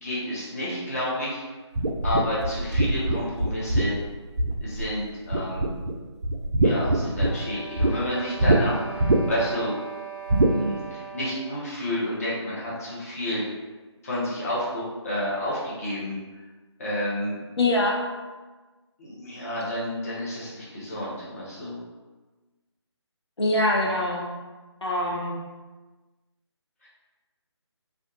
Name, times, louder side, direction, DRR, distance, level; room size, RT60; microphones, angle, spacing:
voice 1, 0.0-1.4 2.0-3.9 4.6-5.7 6.5-8.8 9.3-9.7 10.5-13.4 14.0-16.2 16.8-17.4 19.0-21.7, left 1 dB, 30° left, -7 dB, 0.8 m, -30 dB
sound 1, 1.8-5.0 5.3-5.9 6.2-7.9 8.4-8.6 9.0-9.5 10.3-10.6, right 1 dB, 75° right, 0.4 m, -22 dB
sound 2, 6.9-11.6, right 6 dB, ahead, 0.4 m, -40 dB
voice 2, 17.6-18.0 23.4-24.3 24.8-25.3, left 1 dB, 65° left, -2 dB, 0.6 m, -23 dB
2.4 x 2.4 x 2.4 m, 1.2 s
figure-of-eight pair, 155°, 15 cm